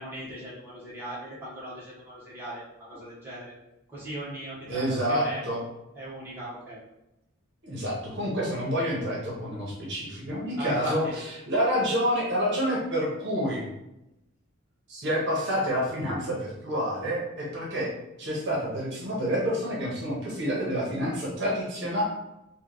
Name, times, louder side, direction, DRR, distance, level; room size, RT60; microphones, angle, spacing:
voice 1, 0.0-3.5 3.9-5.4 5.9-6.8 10.5-11.2, right 1 dB, 10° right, -9 dB, 1.2 m, -38 dB
voice 2, 4.7-5.6 7.6-11.0 11.5-13.7 14.9-17.9 18.2-22.0, equal, 55° right, -5 dB, 1.1 m, -28 dB
3.2 x 2.5 x 3.9 m, 0.90 s
head